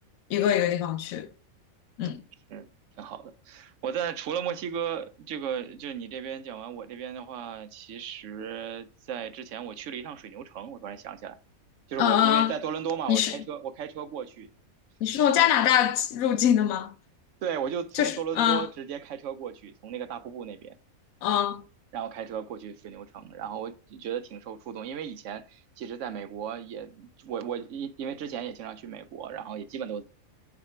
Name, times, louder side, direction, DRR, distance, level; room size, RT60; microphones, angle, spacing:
voice 1, 0.3-1.3 2.0-2.2 12.0-12.5 13.1-13.4 15.0-16.9 17.9-18.7 21.2-21.6, left 10 dB, 75° left, 1.1 m, -23 dB
voice 2, 3.0-11.4 11.9-14.5 15.2-15.5 17.4-20.7 21.9-30.0, right 8 dB, 65° right, 0.8 m, -35 dB
6.1 x 4.4 x 4.4 m
omnidirectional pair, 1.5 m